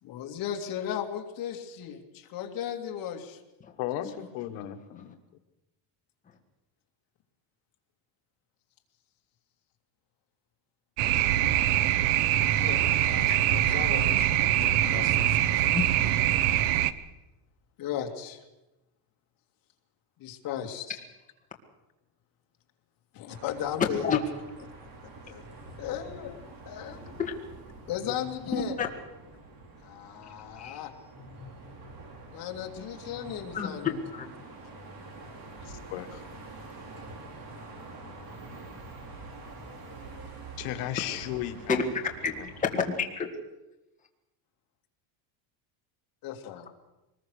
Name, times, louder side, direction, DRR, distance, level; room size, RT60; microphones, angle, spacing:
voice 1, 0.0-3.4 12.5-15.8 17.8-18.4 20.2-21.0 23.1-24.2 24.8-24.9 25.2-25.4 25.8-26.4 26.7-27.0 27.9-28.8 29.8-30.9 32.3-34.0 34.8-34.9 35.1-35.3 46.2-46.7, left 10 dB, 45° left, 3 dB, 2.6 m, -36 dB
voice 2, 3.8-5.2 35.6-36.2 40.6-41.8 42.4-42.5, left 12 dB, 75° left, 7 dB, 1.6 m, -35 dB
sound 1, 11.0-16.9, right 12 dB, 65° right, 1.1 m, -24 dB
sound 2, 23.3-42.8, right 2 dB, 45° right, 4.6 m, -46 dB
voice 3, 28.5-28.9 30.6-30.8 33.5-33.8 34.1-34.3 41.7-41.8 42.2-42.3 42.6-43.3, left 6 dB, 15° left, 1 dB, 2.0 m, -29 dB
24.0 x 20.5 x 6.5 m, 1.0 s
cardioid pair, 170°, 49 cm